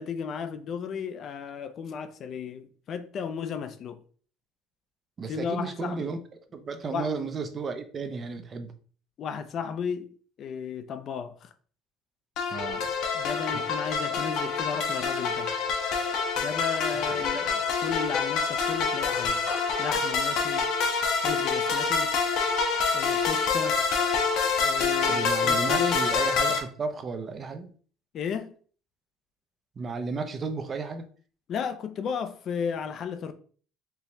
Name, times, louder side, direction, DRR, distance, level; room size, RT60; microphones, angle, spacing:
voice 1, 0.0-4.0 5.3-6.1 6.9-7.1 9.2-10.1 10.4-11.5 13.1-15.5 16.4-19.4 19.8-20.7 21.2-22.1 22.9-23.8 24.6-26.0 28.1-28.5 31.5-33.3, left 7 dB, 45° left, 0.5 m, -34 dB
voice 2, 5.2-6.2 6.5-8.7 12.5-12.9 25.1-27.7 29.8-31.0, right 4 dB, 30° right, 0.6 m, -33 dB
sound 1, 12.4-26.6, left 5 dB, 65° left, 1.0 m, -26 dB
4.5 x 2.9 x 3.3 m
cardioid pair, 120°, 0 cm